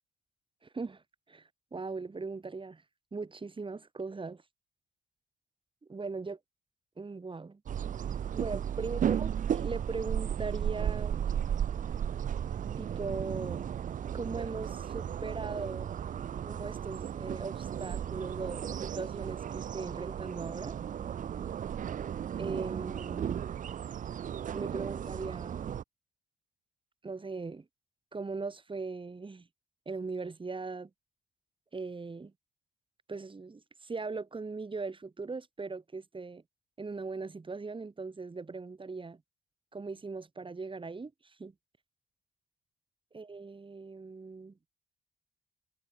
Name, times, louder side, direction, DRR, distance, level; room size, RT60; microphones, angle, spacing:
voice 1, 1.7-2.8 3.1-4.4 5.9-6.4 7.0-7.6 8.3-11.2 12.8-13.6 14.1-15.9 16.4-20.8 22.4-23.4 24.5-25.7 27.0-27.6 28.1-29.5 29.8-30.9 31.7-32.3 33.1-36.4 36.8-39.2 39.7-41.1 41.4-41.5 43.1-44.5, right 4 dB, 25° right, 3.2 m, -39 dB
sound 1, 7.7-25.8, right 9 dB, 40° right, 0.5 m, -35 dB
cardioid pair, 90°, 20 cm